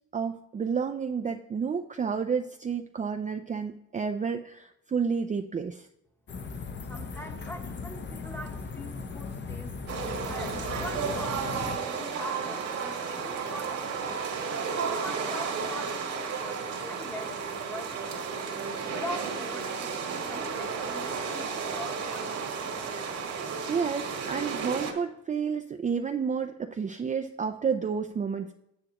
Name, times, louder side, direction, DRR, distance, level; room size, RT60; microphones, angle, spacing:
voice 1, 0.1-5.9 23.7-28.5, right 6 dB, 25° right, 5 dB, 0.4 m, -30 dB
sound 1, 6.3-11.8, left 4 dB, 35° left, 0.8 m, -38 dB
voice 2, 6.8-9.7 10.2-14.4 14.9-18.5 18.9-22.9, left 1 dB, 10° left, 5 dB, 1.1 m, -43 dB
sound 2, 9.9-24.9, right 5 dB, 75° right, 1.8 m, -33 dB
9.3 x 8.8 x 3.0 m, 0.84 s
cardioid pair, 90°, 30 cm